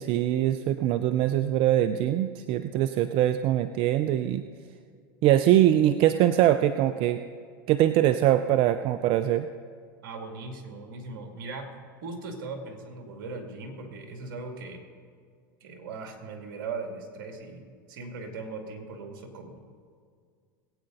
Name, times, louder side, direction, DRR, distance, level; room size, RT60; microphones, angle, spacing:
voice 1, 0.0-4.4 5.2-7.2 7.7-9.5, right 12 dB, 50° right, 11 dB, 0.5 m, -23 dB
voice 2, 10.0-11.7 12.0-14.8 15.6-19.6, right 3 dB, 70° right, 3 dB, 2.4 m, -39 dB
21.0 x 8.8 x 3.9 m, 2.1 s
hypercardioid pair, 100°, 12 cm